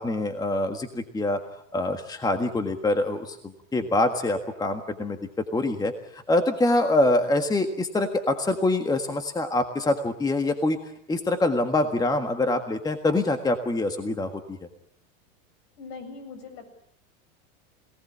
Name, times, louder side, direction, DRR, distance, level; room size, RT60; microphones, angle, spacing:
voice 1, 0.0-1.4 1.7-5.2 5.5-10.8 11.1-14.6, left 2 dB, 10° left, 7 dB, 1.6 m, -25 dB
voice 2, 15.8-16.7, left 4 dB, 60° left, 10 dB, 7.3 m, -41 dB
26.0 x 18.5 x 8.5 m, 0.72 s
supercardioid pair, 130°, 40 cm